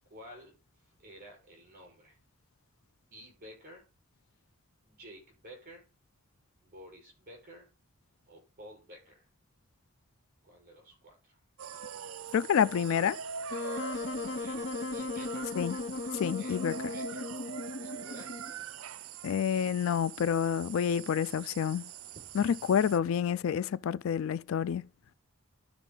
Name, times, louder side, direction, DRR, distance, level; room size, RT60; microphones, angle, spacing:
voice 1, 0.1-2.2 3.1-3.9 4.8-5.9 6.6-7.7 8.3-9.3 10.4-11.4 13.9-15.5 16.4-16.6 16.9-17.3 17.7-18.3 22.1-22.6, equal, 45° right, 5.4 m, -52 dB
sound 1, 11.6-23.0, right 7 dB, 80° right, 0.5 m, -43 dB
voice 2, 12.3-13.2 15.6-15.8 16.1-16.7 19.2-21.9 22.4-24.9, left 8 dB, 70° left, 0.3 m, -28 dB
Wind instrument woodwind instrument, 13.5-18.6, left 3 dB, 55° left, 0.7 m, -37 dB
12.0 x 4.5 x 3.9 m
head